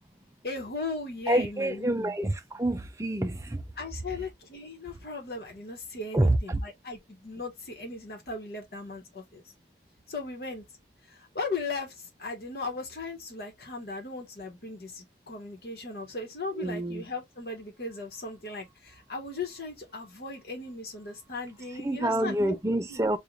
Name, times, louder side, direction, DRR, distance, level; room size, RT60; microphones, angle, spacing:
voice 1, 0.4-2.1 3.8-9.4 10.1-10.6 11.3-11.9 12.2-22.6 22.9-23.0, left 3 dB, 60° left, 1.1 m, -37 dB
voice 2, 1.3-2.3 2.6-3.4 6.1-6.6 16.5-17.0 21.8-23.2, right 1 dB, 15° right, 0.4 m, -27 dB
3.1 x 2.4 x 3.7 m
head